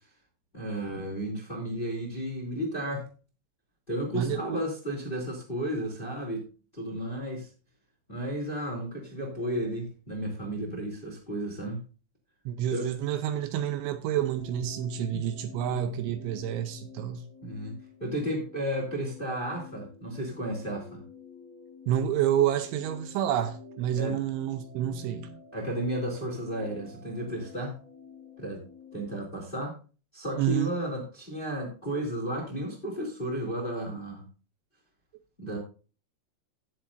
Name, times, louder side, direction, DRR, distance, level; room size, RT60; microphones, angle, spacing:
voice 1, 0.5-3.1 3.9-6.4 6.7-7.5 8.1-11.8 12.7-12.8 15.1-15.3 15.6-15.8 17.4-21.0 23.9-24.1 25.5-27.8 28.4-28.6 28.9-29.8 30.1-34.2 35.4-35.6, equal, 15° left, 2.2 m, -33 dB
voice 2, 4.1-4.6 12.5-17.2 21.9-25.4 30.4-30.7, right 10 dB, 80° right, 2.9 m, -29 dB
sound 1, 14.2-29.2, left 4 dB, 55° right, 4.2 m, -49 dB
17.5 x 7.3 x 2.5 m
omnidirectional pair, 5.7 m